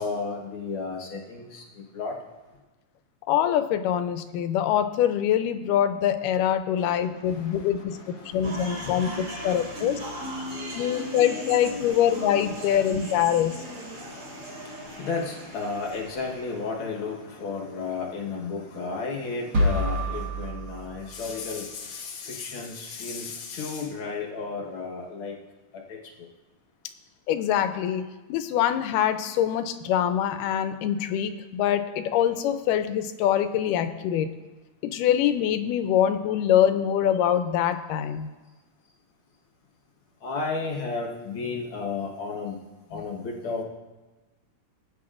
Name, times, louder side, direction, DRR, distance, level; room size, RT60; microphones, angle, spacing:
voice 1, 0.0-1.6 1.9-2.1 6.8-6.9 7.3-11.2 11.9-12.0 13.4-25.3 40.2-42.6 42.9-43.6, left 4 dB, 55° left, -1 dB, 1.5 m, -34 dB
voice 2, 3.3-8.0 8.3-10.0 10.8-13.5 27.3-34.3 34.8-38.3 42.9-43.0, left 10 dB, 85° left, 9 dB, 2.1 m, -24 dB
sound 1, 8.4-16.6, equal, 35° right, 2.6 m, -37 dB
sound 2, 19.5-21.6, equal, 50° right, 1.5 m, -27 dB
19.0 x 9.1 x 2.5 m, 1.2 s
omnidirectional pair, 3.8 m